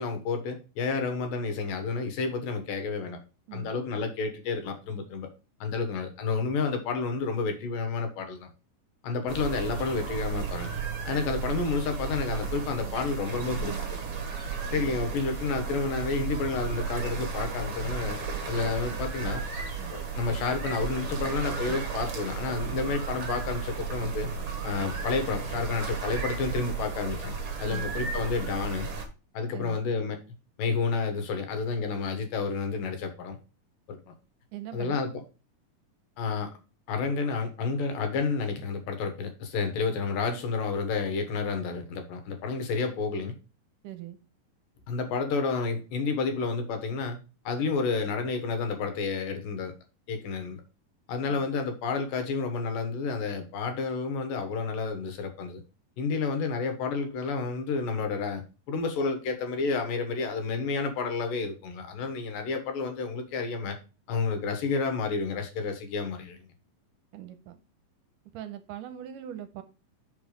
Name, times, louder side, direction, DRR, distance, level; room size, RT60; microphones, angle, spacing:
voice 1, 0.0-3.2 3.5-5.3 5.6-8.5 9.0-10.7 11.1-14.0 14.7-18.2 18.5-19.4 19.9-24.3 24.6-28.9 29.3-30.2 30.6-33.4 33.9-34.0 34.7-35.2 36.2-36.5 36.9-43.3 44.9-47.2 47.4-49.7 50.1-50.6 51.1-55.6 56.0-63.8 64.1-66.5, left 4 dB, 75° left, 6 dB, 2.9 m, -30 dB
sound 1, 9.3-29.1, right 5 dB, 55° right, 1.9 m, -34 dB
voice 2, 34.5-35.0 43.8-44.2 67.1-67.6 68.3-69.6, right 11 dB, 80° right, 10 dB, 2.2 m, -41 dB
5.7 x 5.4 x 4.9 m, 0.32 s
omnidirectional pair, 4.0 m